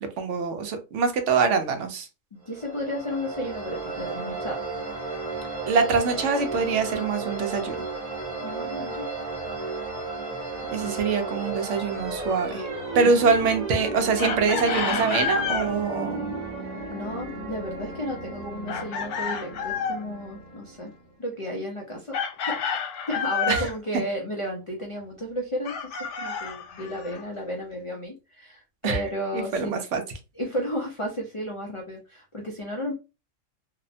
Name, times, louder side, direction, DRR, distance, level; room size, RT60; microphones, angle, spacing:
voice 1, 0.0-2.1 5.7-7.8 10.7-12.7 12.9-16.3 23.5-23.7 23.9-24.0 28.8-29.0 29.3-30.0, right 5 dB, 70° right, 6 dB, 0.9 m, -24 dB
voice 2, 2.3-4.6 8.4-9.0 16.9-20.9 21.2-22.2 22.4-22.6 23.1-29.8 30.4-32.9, equal, 55° left, -1 dB, 0.3 m, -33 dB
sound 1, 2.4-21.1, right 3 dB, 35° right, 0.8 m, -34 dB
Chicken rooster, 14.2-15.7 18.7-20.0 22.1-23.7 25.6-27.2, left 6 dB, 70° left, 0.9 m, -29 dB
2.7 x 2.1 x 2.6 m, 0.28 s
omnidirectional pair, 1.4 m